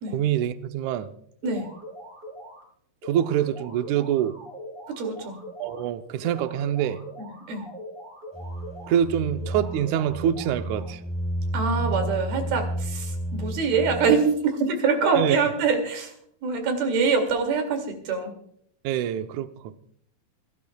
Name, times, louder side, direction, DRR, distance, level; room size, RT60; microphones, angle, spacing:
voice 1, 0.1-1.1 3.0-4.4 5.6-7.0 8.9-11.0 15.2-15.4 18.8-19.8, right 10 dB, 90° right, 9 dB, 1.6 m, -25 dB
sound 1, 1.4-2.6 3.0-5.8 6.2-9.0 9.4-11.0, equal, 35° right, 4.3 m, -42 dB
voice 2, 5.0-5.4 7.3-7.6 11.5-16.1 16.4-18.3, right 5 dB, 75° right, 4 dB, 4.3 m, -24 dB
sound 2, 8.3-14.3, right 1 dB, ahead, 3.8 m, -31 dB
28.5 x 13.5 x 2.3 m, 0.68 s
omnidirectional pair, 4.5 m